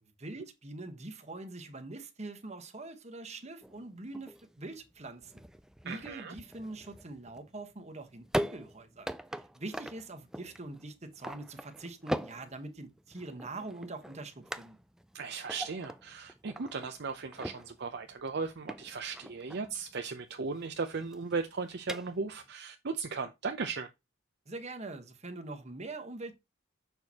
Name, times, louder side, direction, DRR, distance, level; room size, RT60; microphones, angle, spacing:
voice 1, 0.0-5.4 5.8-14.8 24.5-26.3, right 2 dB, 35° right, 1.2 m, -44 dB
sound 1, 3.6-22.5, equal, 5° right, 0.4 m, -42 dB
voice 2, 5.8-6.3 15.1-23.9, right 4 dB, 55° right, 0.6 m, -37 dB
6.8 x 6.2 x 2.9 m
head